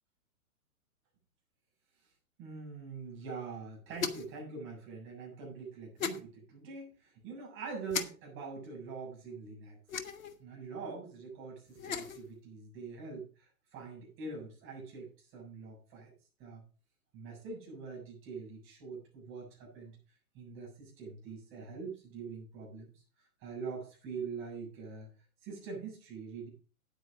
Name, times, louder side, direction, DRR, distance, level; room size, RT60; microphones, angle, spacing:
voice 1, 2.4-9.8 10.4-16.1 16.4-16.6 17.1-20.0 20.3-25.1 25.4-26.5, right 4 dB, 30° right, -2 dB, 7.2 m, -44 dB
sound 1, 4.0-4.4 6.0-6.2 7.9-8.1 9.9-10.4 11.7-12.2, left 6 dB, 65° left, 1.4 m, -36 dB
9.2 x 8.8 x 5.1 m, 0.37 s
figure-of-eight pair, 120°, 44 cm